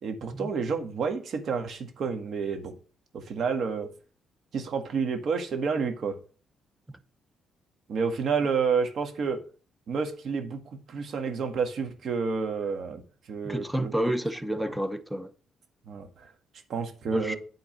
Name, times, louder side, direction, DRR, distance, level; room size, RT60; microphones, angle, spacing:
voice 1, 0.0-2.7 3.1-3.9 4.5-6.1 7.9-9.4 9.9-10.6 10.9-13.0 13.3-14.1 14.6-14.7 15.9-16.3 16.7-17.4, right 5 dB, 60° right, 1.7 m, -29 dB
voice 2, 13.4-15.3 17.1-17.4, right 1 dB, 5° right, 0.8 m, -29 dB
9.2 x 3.8 x 6.2 m
cardioid pair, 90°, 0 cm